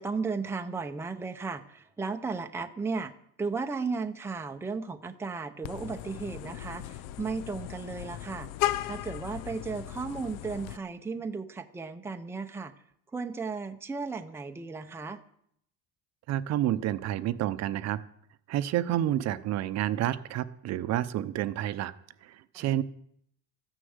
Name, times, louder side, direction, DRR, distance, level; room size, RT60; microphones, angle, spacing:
voice 1, 0.0-3.1 3.4-8.5 8.8-12.7 13.1-15.2 22.5-22.6, right 4 dB, 10° right, 6 dB, 0.6 m, -35 dB
Vehicle horn car horn honking, 5.6-10.8, left 14 dB, 75° left, 0.8 m, -36 dB
voice 2, 16.3-18.0 18.5-21.9 22.2-22.8, right 12 dB, 55° right, 13 dB, 0.8 m, -29 dB
13.5 x 10.0 x 8.0 m, 0.69 s
cardioid pair, 160°, 32 cm